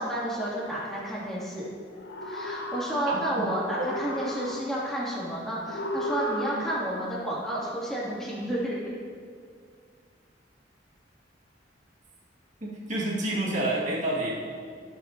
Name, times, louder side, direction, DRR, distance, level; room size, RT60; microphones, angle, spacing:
voice 1, 0.0-1.7 2.2-8.9, right 1 dB, ahead, -8 dB, 2.9 m, -31 dB
sound 1, 1.9-3.4 3.7-5.0 5.7-7.0, equal, 80° left, 1.1 m, -34 dB
voice 2, 3.1-3.5 12.6-14.3, right 1 dB, 45° right, -5 dB, 2.3 m, -29 dB
18.0 x 7.1 x 3.0 m, 2.1 s
head